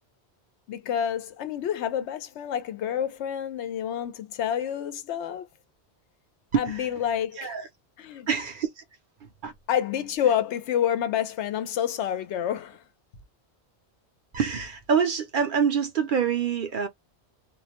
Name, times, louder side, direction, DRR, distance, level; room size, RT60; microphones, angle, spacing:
voice 1, 0.7-5.5 6.6-7.5 8.0-8.3 9.7-12.8, left 9 dB, 85° left, 0.9 m, -28 dB
voice 2, 8.3-8.8 9.4-9.5 14.3-16.9, right 7 dB, 60° right, 0.6 m, -25 dB
2.3 x 2.1 x 2.8 m
omnidirectional pair, 1.1 m